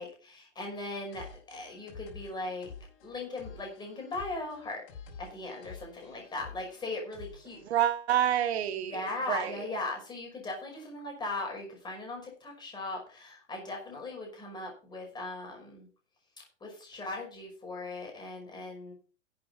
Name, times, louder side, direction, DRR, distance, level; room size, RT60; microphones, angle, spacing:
voice 1, 0.0-2.7 3.0-4.8 5.2-7.6 8.9-15.9 16.4-18.9, left 2 dB, 10° left, 5.6 m, -39 dB
sound 1, 1.1-7.7, left 5 dB, 50° left, 5.6 m, -49 dB
voice 2, 7.7-9.7, right 11 dB, 60° right, 1.8 m, -28 dB
12.0 x 7.8 x 5.5 m
hypercardioid pair, 145°, 36 cm